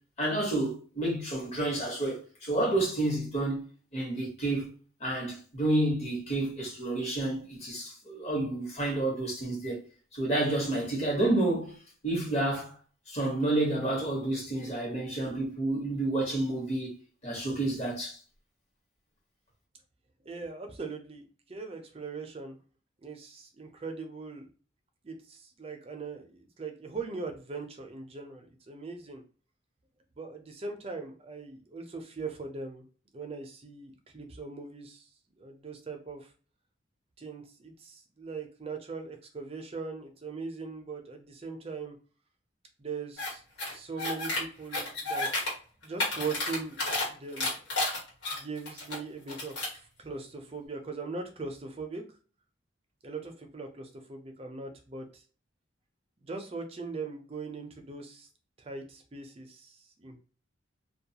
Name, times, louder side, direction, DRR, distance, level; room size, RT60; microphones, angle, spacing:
voice 1, 0.2-3.6 3.9-4.7 5.0-9.8 10.1-11.7 12.0-12.7 13.1-16.9 17.2-18.2, right 2 dB, 35° left, 1.0 m, -29 dB
voice 2, 20.3-21.2 21.5-22.6 23.0-24.5 25.0-29.2 30.2-32.8 33.1-35.0 35.4-36.3 37.2-42.0 42.8-43.4 43.7-45.3 45.8-47.5 48.3-49.7 50.0-52.0 53.0-55.2 56.2-58.3 58.6-60.2, right 4 dB, 30° right, 0.5 m, -40 dB
sound 1, 43.2-43.3 43.6-44.4 44.7-45.5 45.8-47.0 47.4-48.9 49.3-49.8, left 2 dB, 75° left, 1.2 m, -31 dB
2.3 x 2.3 x 2.8 m
head